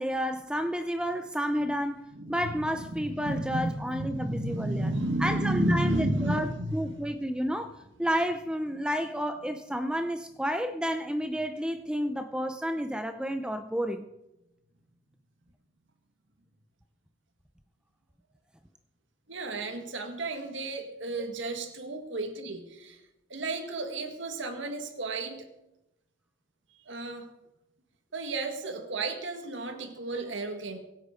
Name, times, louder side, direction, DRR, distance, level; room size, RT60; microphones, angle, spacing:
voice 1, 0.0-4.9 5.2-7.7 8.0-14.0 21.2-21.3, equal, 5° right, 0.6 m, -31 dB
voice 2, 2.1-2.5 2.9-6.9 19.3-23.0 23.3-25.4 26.9-27.3 28.1-30.8, right 1 dB, 75° right, 1.8 m, -32 dB
24.0 x 8.3 x 5.1 m
head